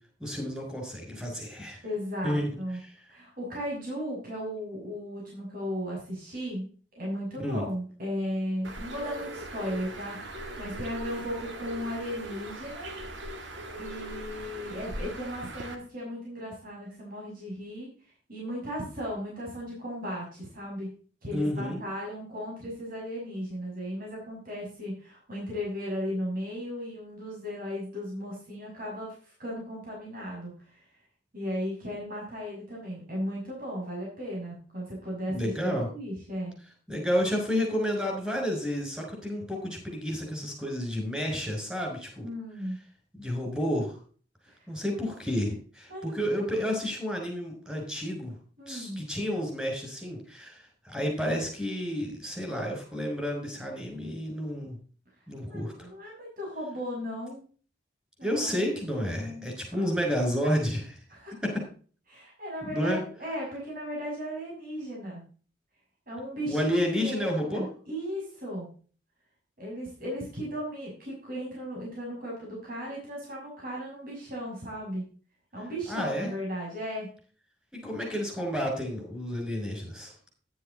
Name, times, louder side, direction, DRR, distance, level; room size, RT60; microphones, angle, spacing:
voice 1, 0.2-1.8 2.2-2.5 2.8-2.9 7.4-7.6 21.3-21.8 35.2-35.9 36.9-42.3 43.2-44.0 44.7-48.3 48.7-54.8 55.3-55.9 58.2-61.0 61.4-61.6 62.6-63.0 66.5-67.6 75.9-76.3 77.7-80.1, equal, 5° right, 1 dB, 6.1 m, -30 dB
voice 2, 1.8-2.8 3.1-6.7 7.0-12.9 13.7-17.9 18.3-20.9 21.2-30.8 31.3-36.5 42.2-42.8 45.9-46.3 48.6-49.0 55.5-57.4 58.2-58.6 59.0-59.4 59.7-59.8 61.1-61.5 62.1-65.2 66.1-66.7 66.9-68.7 69.6-75.0 75.5-77.1, equal, 50° right, -3 dB, 6.0 m, -36 dB
Bird, 8.6-15.8, right 1 dB, 90° right, 2.0 m, -40 dB
11.0 x 9.4 x 4.1 m, 0.40 s
head